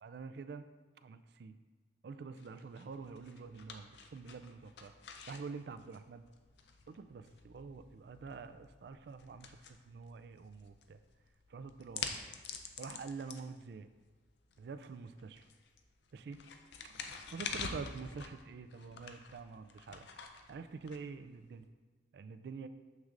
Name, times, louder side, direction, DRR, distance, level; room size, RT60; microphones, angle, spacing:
voice 1, 0.0-0.7 1.0-1.5 2.0-4.9 5.3-6.2 6.9-9.6 9.8-11.0 11.5-12.1 12.8-13.9 14.6-15.5 16.1-16.4 16.8-17.0 17.3-20.1 20.5-21.7 22.1-22.7, right 4 dB, 65° right, 11 dB, 0.3 m, -47 dB
sound 1, 2.4-21.6, left 5 dB, 75° left, 0.5 m, -48 dB
6.5 x 6.3 x 2.5 m, 1.3 s
head